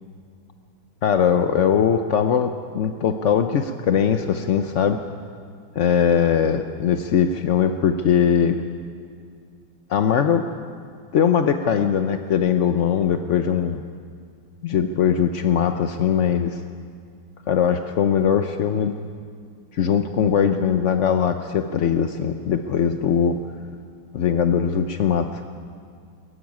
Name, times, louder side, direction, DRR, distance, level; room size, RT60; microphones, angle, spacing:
voice 1, 1.0-5.0 5.8-8.6 9.9-10.5 11.1-13.8 14.6-16.6 17.5-19.0 19.7-23.4 24.1-25.4, left 8 dB, 60° left, 7 dB, 0.7 m, -20 dB
21.5 x 14.5 x 9.4 m, 2.2 s
omnidirectional pair, 2.1 m